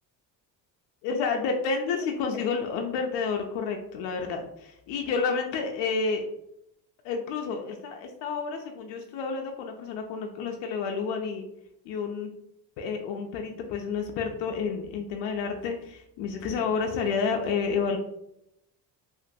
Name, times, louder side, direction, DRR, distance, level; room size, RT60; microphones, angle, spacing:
voice 1, 1.0-6.2 7.0-11.4 11.9-12.3 12.8-18.0, left 5 dB, 85° left, 3 dB, 0.5 m, -30 dB
2.9 x 2.5 x 2.6 m, 0.80 s
cardioid pair, 115°, 42 cm